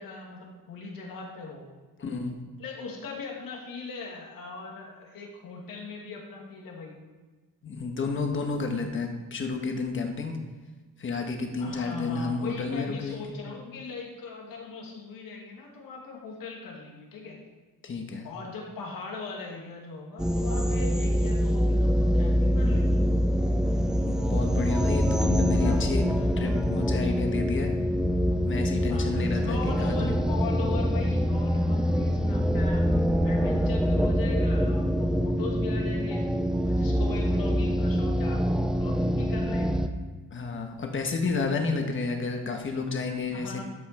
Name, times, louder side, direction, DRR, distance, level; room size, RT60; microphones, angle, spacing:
voice 1, 0.0-1.7 2.6-7.0 11.6-17.4 18.2-23.0 25.6-26.5 28.9-32.9 33.2-36.3 36.6-39.8 43.3-43.6, left 4 dB, 85° left, 0 dB, 2.3 m, -39 dB
voice 2, 2.0-2.4 7.6-10.4 11.0-13.3 17.8-18.3 24.0-26.0 26.4-27.7 28.4-30.2 40.3-43.6, left 4 dB, 35° left, 3 dB, 1.4 m, -31 dB
sound 1, 20.2-39.9, equal, ahead, 0.5 m, -25 dB
12.5 x 5.9 x 4.4 m, 1.3 s
cardioid pair, 135°, 33 cm